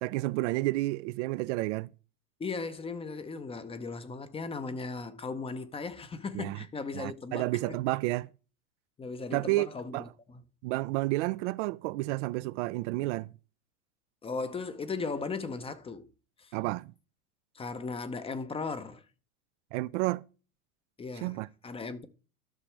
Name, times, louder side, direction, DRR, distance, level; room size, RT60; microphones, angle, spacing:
voice 1, 0.0-1.9 6.3-6.6 6.9-8.3 9.3-9.7 9.9-10.1 10.6-13.3 16.5-16.9 19.7-20.2 21.2-21.5, right 20 dB, 60° right, 0.5 m, -30 dB
voice 2, 2.4-7.8 9.0-10.0 10.3-10.4 14.2-16.1 16.4-16.5 17.5-19.0 21.0-22.1, left 4 dB, 15° left, 0.6 m, -37 dB
13.0 x 6.0 x 3.3 m
supercardioid pair, 120°, 40 cm